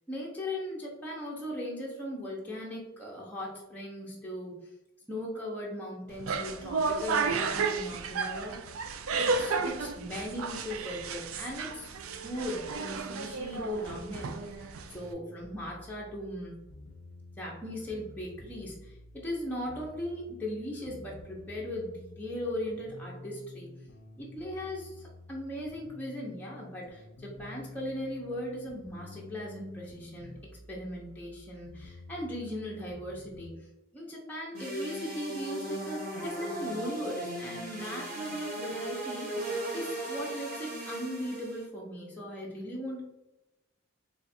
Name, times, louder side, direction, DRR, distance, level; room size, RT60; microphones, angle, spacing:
voice 1, 0.1-4.6 5.1-8.6 9.2-11.9 12.2-16.5 17.4-23.7 24.2-30.4 30.7-33.7 33.9-43.0, left 1 dB, 10° left, -4 dB, 0.6 m, -38 dB
sound 1, 6.1-15.1, right 4 dB, 80° right, 0.4 m, -33 dB
sound 2, 14.9-33.5, left 2 dB, 65° left, 0.5 m, -50 dB
sound 3, 34.5-41.7, right 1 dB, 45° right, 1.1 m, -37 dB
3.3 x 2.5 x 4.2 m, 0.98 s
head